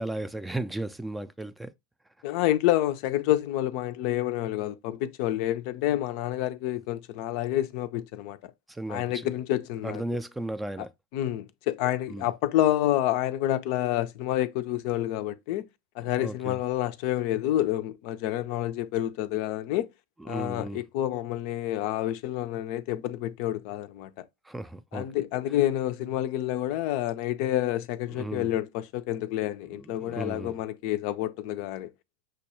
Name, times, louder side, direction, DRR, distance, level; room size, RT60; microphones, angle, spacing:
voice 1, 0.0-1.7 8.7-9.3 9.8-10.9 12.1-12.3 16.2-16.6 20.2-20.8 24.4-25.1 28.1-28.5 29.7-30.6, right 1 dB, 5° right, 0.4 m, -35 dB
voice 2, 2.2-8.5 8.9-10.0 11.1-15.7 16.0-19.9 20.3-24.1 24.9-31.9, left 13 dB, 55° left, 0.4 m, -28 dB
6.1 x 2.2 x 2.9 m
hypercardioid pair, 90°, 0 cm